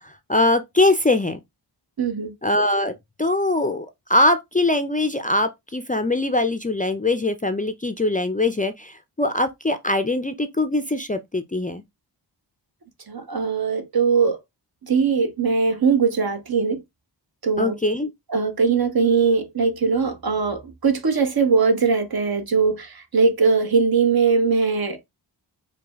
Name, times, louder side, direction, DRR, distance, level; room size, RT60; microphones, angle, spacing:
voice 1, 0.3-1.4 2.4-2.9 3.2-11.8 17.6-18.1, left 2 dB, 20° left, 0.4 m, -22 dB
voice 2, 2.0-2.3 13.1-14.4 14.8-16.8 17.4-17.8 18.3-25.0, right 5 dB, 55° right, 0.9 m, -20 dB
4.9 x 2.3 x 3.4 m
wide cardioid pair, 65°, 44 cm